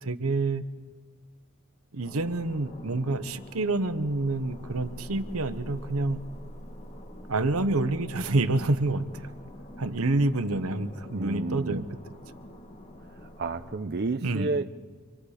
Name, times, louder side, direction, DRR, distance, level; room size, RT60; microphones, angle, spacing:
voice 1, 0.0-0.6 1.9-6.2 7.3-9.3 9.8-11.8 14.2-14.5, right 2 dB, 80° right, 11 dB, 1.0 m, -27 dB
sound 1, 2.0-13.8, equal, 35° left, 1.4 m, -45 dB
voice 2, 11.0-11.9 13.1-14.6, right 3 dB, 50° right, 6 dB, 0.6 m, -31 dB
26.5 x 24.5 x 5.0 m, 1.4 s
head